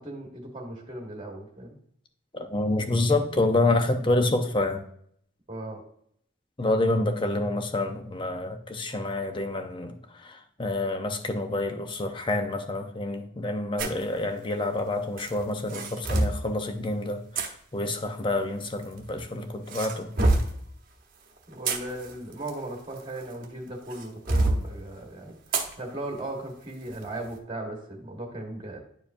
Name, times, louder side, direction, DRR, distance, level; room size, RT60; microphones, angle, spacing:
voice 1, 0.0-1.8 5.5-5.8 21.5-28.8, right 1 dB, 25° right, 0 dB, 1.4 m, -37 dB
voice 2, 2.3-4.8 6.6-9.9 10.2-20.1, left 2 dB, 25° left, 6 dB, 0.6 m, -28 dB
sound 1, 13.8-14.0 15.2-16.4 17.3-17.5 18.6-19.2 19.7-20.6 21.4-23.4 23.9-24.6 25.5-25.7 26.2-26.3 26.9-27.1, right 2 dB, 45° right, 1.0 m, -26 dB
10.0 x 4.7 x 2.6 m, 0.67 s
head